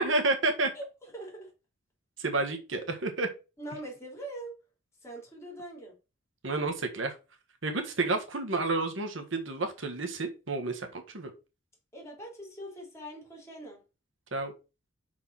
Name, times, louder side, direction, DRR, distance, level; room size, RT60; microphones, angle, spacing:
voice 1, 0.0-0.7 2.2-3.3 6.4-7.1 7.6-11.3 14.3-14.5, right 3 dB, 75° right, 1.4 m, -30 dB
voice 2, 0.7-1.5 3.6-4.6 5.0-6.0 11.9-13.8, right 1 dB, 15° left, 3.3 m, -42 dB
5.7 x 4.7 x 6.0 m
head